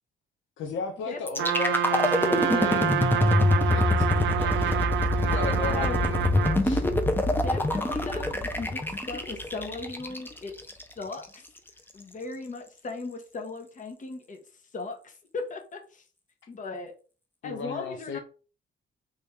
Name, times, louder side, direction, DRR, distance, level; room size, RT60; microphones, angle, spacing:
voice 1, 0.6-3.0 3.7-4.1 4.4-4.8 5.2-6.9 17.4-18.2, left 4 dB, 75° left, 4 dB, 0.6 m, -35 dB
sound 1, 1.3-11.3, left 2 dB, 10° left, 0.6 m, -25 dB
Trumpet, 1.4-6.6, right 9 dB, 70° right, 0.5 m, -28 dB
voice 2, 5.3-6.0 7.3-10.5 11.0-11.5 11.9-16.0 16.5-16.9 17.4-18.2, left 3 dB, 40° left, 4 dB, 1.0 m, -38 dB
3.2 x 2.6 x 3.5 m, 0.37 s
cardioid pair, 90°, 20 cm